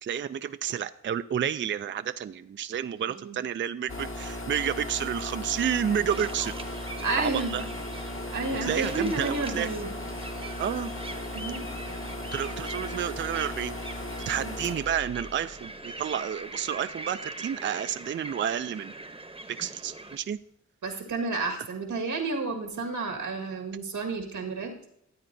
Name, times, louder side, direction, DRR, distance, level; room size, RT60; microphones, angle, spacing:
voice 1, 0.0-6.6 7.1-7.6 8.6-9.7 10.6-10.9 12.3-13.8 14.3-18.9 19.5-20.4, right 9 dB, 40° right, 12 dB, 0.4 m, -30 dB
voice 2, 3.0-3.4 7.0-7.6 7.9-9.9 11.3-11.7 14.3-14.6 20.8-24.7, right 3 dB, 90° right, 2 dB, 1.7 m, -31 dB
sound 1, 3.9-16.3, left 1 dB, 45° left, 1.4 m, -37 dB
sound 2, 6.1-20.2, right 2 dB, 20° right, 0.9 m, -42 dB
13.5 x 8.6 x 2.7 m, 0.74 s
cardioid pair, 50°, 30 cm